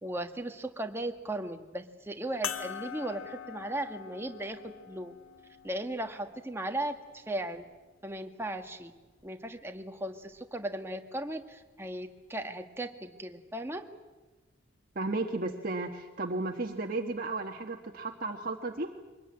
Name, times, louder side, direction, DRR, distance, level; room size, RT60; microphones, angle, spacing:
voice 1, 0.0-5.1 5.6-7.7 8.0-8.9 9.2-13.8, right 1 dB, 10° right, 5 dB, 1.5 m, -37 dB
sound 1, 2.4-7.2 8.0-8.1 10.3-10.4, left 8 dB, 85° left, 1.1 m, -43 dB
voice 2, 14.9-18.9, right 2 dB, 45° right, 1 dB, 1.5 m, -34 dB
24.0 x 20.5 x 9.7 m, 1.2 s
head